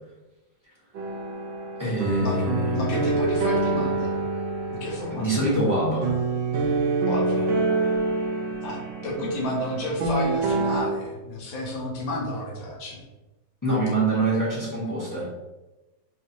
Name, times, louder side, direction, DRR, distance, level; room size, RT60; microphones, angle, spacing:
sound 1, 0.9-10.8, right 2 dB, 75° right, 1.4 m, -26 dB
voice 1, 1.8-3.0 5.1-6.2 13.6-15.3, right 2 dB, 15° left, -7 dB, 0.8 m, -25 dB
voice 2, 2.7-4.3 4.7-5.5 7.0-7.5 7.8-7.9 8.6-13.0, left 1 dB, 75° left, -4 dB, 1.8 m, -31 dB
4.1 x 3.2 x 2.8 m, 1.1 s
omnidirectional pair, 2.1 m